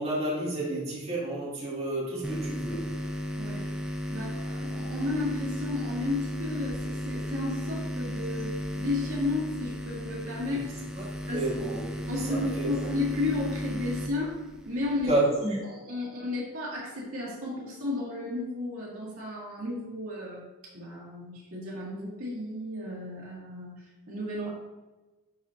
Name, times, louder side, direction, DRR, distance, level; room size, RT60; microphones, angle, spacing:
voice 1, 0.0-2.9 10.5-10.6 11.0-11.1 11.3-11.9 12.3-12.7 15.1-15.6, right 2 dB, 30° right, -8 dB, 2.1 m, -30 dB
sound 1, 2.2-15.2, equal, 5° right, 0.3 m, -35 dB
voice 2, 4.1-10.7 11.3-11.5 12.1-14.4 14.7-15.2 15.6-20.5 20.7-24.5, left 2 dB, 70° right, -6 dB, 2.0 m, -33 dB
11.0 x 4.0 x 2.6 m, 1.2 s
head